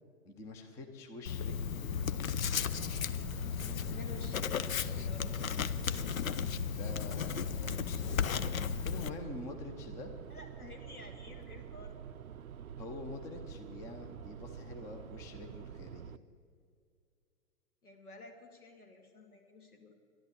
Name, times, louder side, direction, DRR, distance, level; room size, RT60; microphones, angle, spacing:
voice 1, 0.2-2.7 6.7-10.1 12.8-16.1, left 2 dB, 5° left, 4 dB, 0.5 m, -46 dB
Writing, 1.3-9.1, left 7 dB, 65° left, 0.8 m, -34 dB
sound 1, 2.4-16.2, right 8 dB, 75° right, 0.6 m, -47 dB
voice 2, 3.9-5.8 10.3-11.9 17.8-19.9, left 2 dB, 85° left, 3 dB, 2.4 m, -52 dB
11.5 x 11.0 x 8.0 m, 2.3 s
figure-of-eight pair, 115°, 43 cm